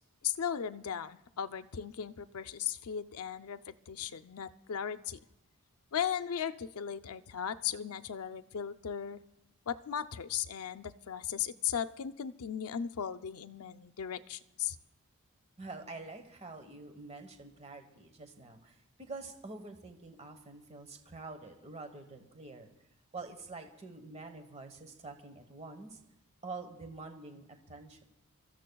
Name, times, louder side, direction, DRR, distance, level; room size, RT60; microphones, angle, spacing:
voice 1, 0.2-5.2 5.9-9.2 9.7-14.8, left 8 dB, 75° left, 12 dB, 0.5 m, -37 dB
voice 2, 15.6-22.7 23.1-26.0 26.4-28.0, right 3 dB, 30° right, 6 dB, 1.1 m, -46 dB
28.5 x 14.0 x 2.3 m, 0.85 s
head